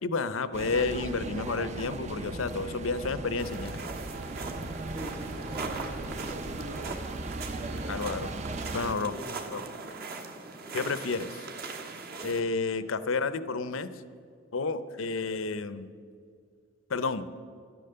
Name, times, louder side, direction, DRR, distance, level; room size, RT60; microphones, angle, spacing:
voice 1, 0.0-3.8 7.9-8.3 8.7-9.1 9.5-9.6 10.7-11.5 12.2-13.9 14.5-15.9 16.9-17.3, left 4 dB, 85° left, 14 dB, 0.7 m, -31 dB
sound 1, 0.5-8.9, right 2 dB, 35° right, 0.5 m, -37 dB
sound 2, 3.4-12.4, right 3 dB, 50° right, 1.3 m, -40 dB
voice 2, 4.9-7.1 7.7-8.1 8.9-9.4, equal, 75° right, 3 dB, 1.9 m, -44 dB
12.5 x 10.5 x 6.8 m, 2.2 s
head